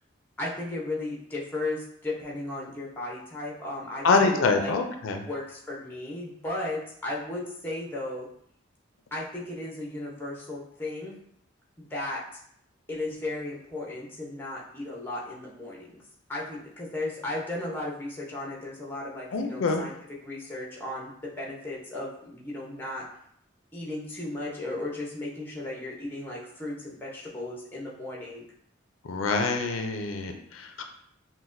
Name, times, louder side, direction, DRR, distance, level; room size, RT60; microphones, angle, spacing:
voice 1, 0.4-4.7 5.3-8.3 9.1-11.2 11.8-12.2 12.9-15.9 16.3-23.1 23.7-28.4, left 2 dB, 10° left, -4 dB, 0.7 m, -35 dB
voice 2, 4.0-5.3 19.3-19.8 29.1-30.8, left 4 dB, 85° left, 5 dB, 0.4 m, -25 dB
5.8 x 2.2 x 2.6 m, 0.69 s
head